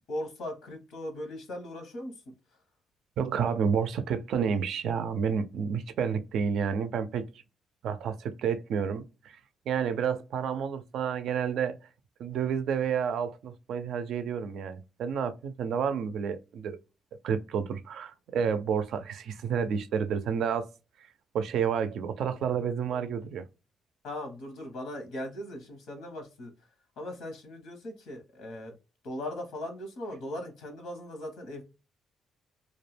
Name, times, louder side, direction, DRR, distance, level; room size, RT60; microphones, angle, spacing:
voice 1, 0.1-2.1 22.9-23.0 24.0-26.5 27.0-28.7 29.0-31.6, left 1 dB, 85° left, 0.9 m, -39 dB
voice 2, 3.2-7.3 7.8-9.0 9.7-11.8 12.2-16.8 17.2-20.7 21.3-23.4, right 7 dB, 75° right, 0.4 m, -30 dB
2.3 x 2.1 x 3.2 m
cardioid pair, 90°, 0 cm